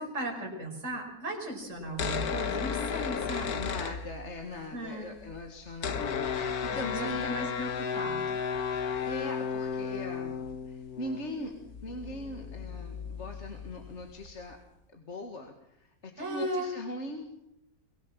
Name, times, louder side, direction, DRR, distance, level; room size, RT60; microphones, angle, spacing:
voice 1, 0.0-3.7 4.7-5.2 6.7-8.2 16.2-16.7, right 1 dB, 55° right, 1 dB, 5.7 m, -36 dB
sound 1, 1.8-4.6 4.8-4.9 5.1-14.5, left 7 dB, 90° left, 1.7 m, -34 dB
voice 2, 3.6-7.5 8.7-10.4 10.7-11.5 11.8-14.6 14.9-17.3, left 1 dB, 50° left, 4 dB, 2.2 m, -40 dB
24.0 x 18.5 x 7.5 m, 0.82 s
omnidirectional pair, 1.6 m